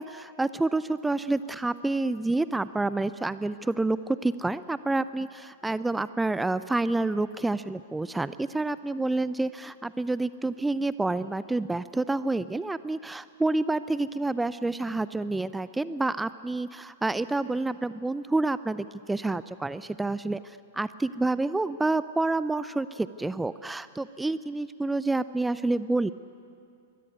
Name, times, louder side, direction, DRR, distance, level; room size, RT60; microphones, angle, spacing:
voice 1, 0.0-26.1, right 2 dB, 5° right, 15 dB, 0.5 m, -28 dB
26.0 x 22.0 x 9.2 m, 2.4 s
figure-of-eight pair, 105°, 0 cm